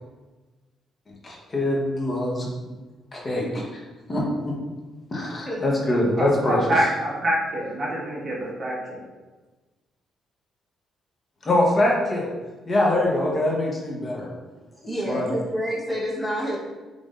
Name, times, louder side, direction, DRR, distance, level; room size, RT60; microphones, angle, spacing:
voice 1, 1.2-2.5 3.1-3.8 4.1-4.5 5.1-6.6 11.4-12.3 12.7-14.3 15.1-15.2, left 1 dB, 35° left, -2 dB, 1.1 m, -23 dB
voice 2, 6.2-9.1, right 1 dB, 35° right, -5 dB, 1.5 m, -26 dB
voice 3, 14.7-16.6, equal, 5° left, -4 dB, 1.1 m, -28 dB
5.4 x 3.4 x 2.5 m, 1.2 s
cardioid pair, 90°, 0 cm